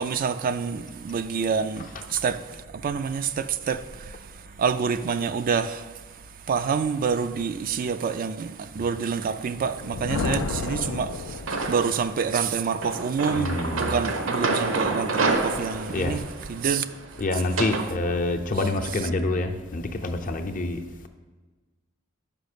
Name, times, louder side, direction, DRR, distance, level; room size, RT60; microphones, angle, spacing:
voice 1, 0.0-16.2 16.5-16.9, right 6 dB, 45° right, 0.3 m, -27 dB
Thunder, 9.6-12.1, left 4 dB, 85° left, 0.4 m, -31 dB
sound 1, 11.5-12.1 12.8-17.9, right 3 dB, 70° right, 0.7 m, -28 dB
voice 2, 13.4-14.0 15.9-16.2 17.2-20.8, left 2 dB, 45° left, 0.6 m, -27 dB
5.6 x 5.3 x 6.7 m
head